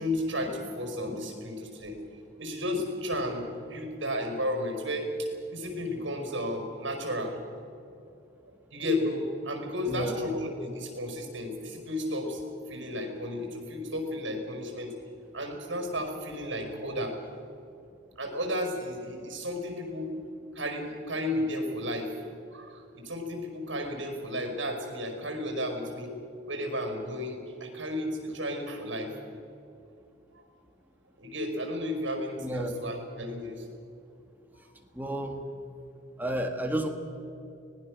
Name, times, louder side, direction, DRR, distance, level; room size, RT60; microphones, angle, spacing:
voice 1, 0.0-2.0 2.4-7.4 8.7-12.4 12.7-14.9 15.3-17.2 18.2-20.1 20.5-22.1 22.5-26.1 26.4-29.1 31.2-33.7 34.5-34.6, left 1 dB, 70° right, 3 dB, 5.2 m, -33 dB
voice 2, 9.8-10.2 32.4-32.7 34.9-35.4 36.2-36.9, right 1 dB, 10° right, 4 dB, 1.7 m, -31 dB
24.5 x 19.0 x 6.4 m, 2.7 s
head